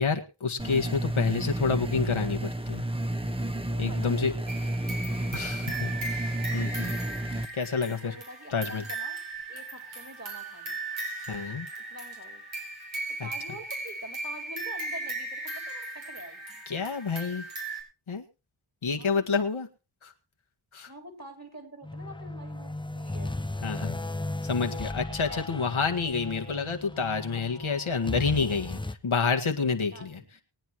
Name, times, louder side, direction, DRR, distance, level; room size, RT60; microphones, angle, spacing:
voice 1, 0.0-2.8 3.8-4.3 5.3-7.0 7.3-8.1 8.5-8.8 11.3-11.7 13.2-13.3 16.7-17.5 18.1-18.2 18.8-19.7 20.0-20.1 20.7-20.9 23.6-24.0 24.4-30.2, left 5 dB, 85° left, 4 dB, 1.8 m, -29 dB
sound 1, 0.6-7.5, right 1 dB, 10° right, 1.2 m, -31 dB
voice 2, 3.7-4.9 8.0-9.2 9.5-10.8 11.9-12.4 13.2-16.6 18.9-19.3 20.9-23.4 25.3-25.6 28.1-28.7 29.9-30.4, right 1 dB, 35° right, 5 dB, 4.4 m, -46 dB
sound 2, 4.5-17.8, right 2 dB, 75° right, 4.8 m, -37 dB
sound 3, 21.8-28.9, left 2 dB, 10° left, 0.7 m, -36 dB
21.5 x 9.3 x 3.0 m, 0.30 s
wide cardioid pair, 50°, 47 cm